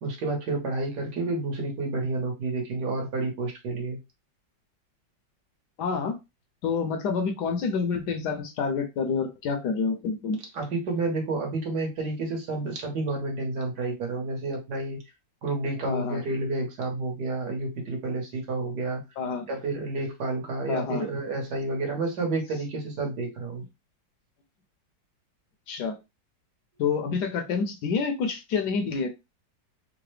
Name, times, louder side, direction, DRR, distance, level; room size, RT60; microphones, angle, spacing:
voice 1, 0.0-4.0 10.5-15.0 15.4-19.0 19.5-23.6, right 3 dB, 65° right, 1 dB, 1.6 m, -30 dB
voice 2, 5.8-6.2 6.6-10.4 15.9-16.2 19.2-19.5 20.7-21.1 25.7-26.0 26.8-29.1, left 5 dB, 70° left, 5 dB, 1.1 m, -28 dB
3.8 x 2.1 x 3.2 m, 0.24 s
omnidirectional pair, 2.0 m